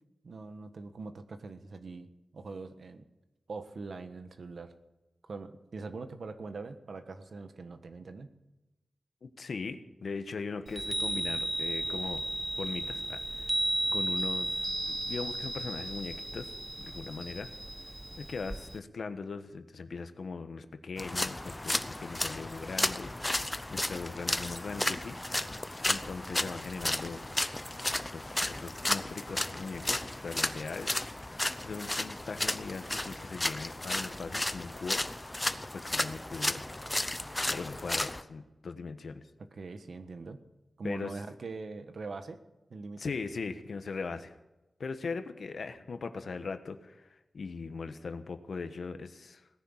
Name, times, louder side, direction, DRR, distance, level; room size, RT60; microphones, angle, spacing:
voice 1, 0.2-2.1 2.3-3.0 3.5-4.7 5.2-8.3 39.5-40.4 40.8-42.4 42.7-43.1, right 3 dB, 65° right, 8 dB, 1.4 m, -42 dB
voice 2, 9.2-12.3 12.6-13.6 13.9-17.5 18.2-23.1 23.7-25.2 25.9-27.2 28.1-31.0 31.6-35.2 35.7-36.6 37.5-39.3 40.8-41.2 43.0-44.4 44.8-49.5, left 4 dB, 70° left, 9 dB, 1.2 m, -40 dB
Chime, 10.7-18.8, right 1 dB, 15° right, 0.4 m, -34 dB
sound 1, 21.0-38.2, left 1 dB, 15° left, 0.7 m, -33 dB
18.0 x 10.5 x 7.3 m, 0.99 s
wide cardioid pair, 110°, 0 cm